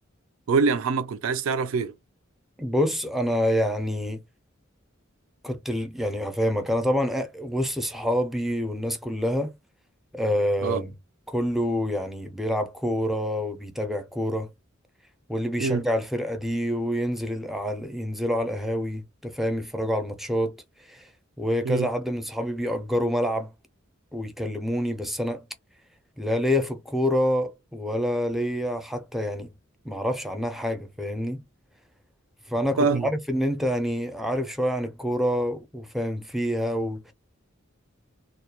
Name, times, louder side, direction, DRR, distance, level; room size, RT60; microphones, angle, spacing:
voice 1, 0.5-1.9 10.6-10.8 15.6-15.9 21.6-21.9 32.8-33.1, right 4 dB, 80° right, 0.4 m, -24 dB
voice 2, 2.6-4.2 5.4-9.5 10.1-10.9 11.3-14.5 15.3-20.6 20.9-21.1 21.4-23.5 24.1-25.4 26.2-29.5 29.8-31.4 32.5-37.1, equal, ahead, 0.4 m, -27 dB
2.2 x 2.1 x 2.8 m
head